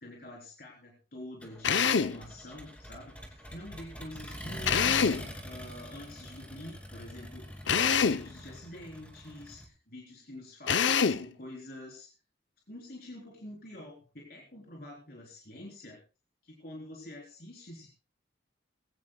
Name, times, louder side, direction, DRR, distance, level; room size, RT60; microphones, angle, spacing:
voice 1, 0.0-5.1 5.4-12.1 12.7-16.0 16.4-17.9, left 1 dB, 55° left, -3 dB, 4.0 m, -47 dB
Accelerating revving vroom, 1.4-9.7, equal, 5° left, 2.9 m, -44 dB
Drill, 1.6-2.2 4.7-5.3 7.7-8.3 10.7-11.3, left 6 dB, 85° left, 0.7 m, -25 dB
22.0 x 16.5 x 2.3 m, 0.34 s
head